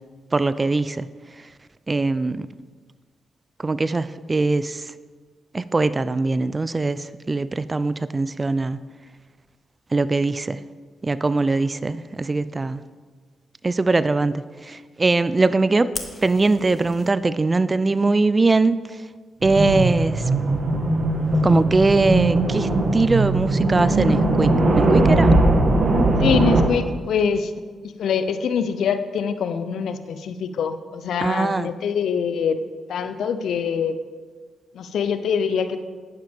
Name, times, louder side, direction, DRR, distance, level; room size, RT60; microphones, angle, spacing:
voice 1, 0.3-1.1 1.9-2.5 3.6-4.8 5.5-8.8 9.9-10.6 11.0-12.8 13.6-15.9 16.2-18.8 19.4-20.2 21.4-25.3 31.2-31.7, right 3 dB, 30° right, 16 dB, 0.4 m, -21 dB
Fire, 15.9-17.1, left 2 dB, 30° left, 1.4 m, -36 dB
sound 1, 19.4-26.6, right 2 dB, 55° right, 1.5 m, -19 dB
voice 2, 26.2-27.5 28.0-32.6 32.9-34.0 34.7-35.8, left 6 dB, 70° left, 11 dB, 0.6 m, -24 dB
10.5 x 10.5 x 3.5 m, 1.5 s
hypercardioid pair, 45°, 0 cm